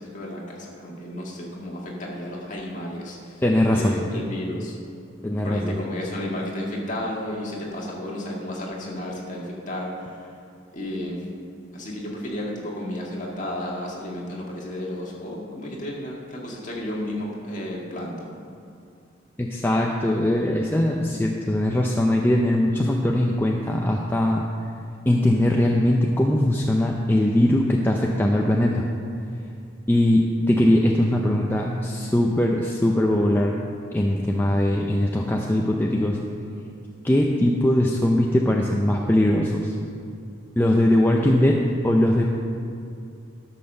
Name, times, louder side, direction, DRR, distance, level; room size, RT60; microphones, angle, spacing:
voice 1, 0.0-3.4 3.7-4.7 5.4-10.2 10.7-11.2 11.7-18.3, left 1 dB, 40° left, -3 dB, 1.9 m, -32 dB
voice 2, 3.4-4.0 5.2-5.7 19.4-24.4 25.1-28.8 29.9-33.6 33.9-36.2 37.0-39.8 40.6-42.2, left 1 dB, 10° left, 0 dB, 0.5 m, -21 dB
12.0 x 5.8 x 6.5 m, 2.5 s
head